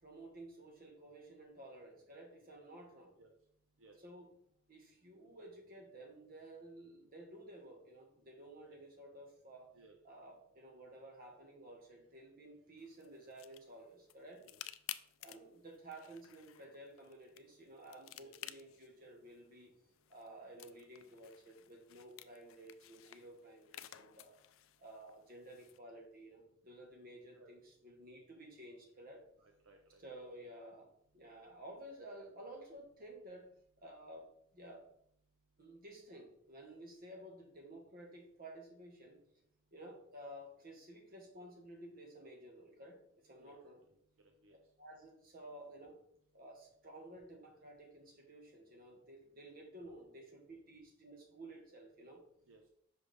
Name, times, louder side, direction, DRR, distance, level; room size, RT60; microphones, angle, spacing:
voice 1, 0.0-3.1 4.0-4.3 4.7-9.7 10.0-14.4 15.2-19.7 20.1-24.4 24.8-29.2 30.0-33.5 33.8-34.3 34.5-34.8 35.6-39.2 39.7-43.8 44.8-46.0 46.3-52.2, right 1 dB, 50° right, 2 dB, 1.4 m, -53 dB
sound 1, 12.8-25.8, left 13 dB, 75° left, 0.4 m, -54 dB
voice 2, 29.4-30.0 43.4-43.6 44.4-44.6 52.5-52.7, right 3 dB, 85° right, 3 dB, 0.8 m, -62 dB
5.8 x 4.9 x 3.3 m, 0.68 s
head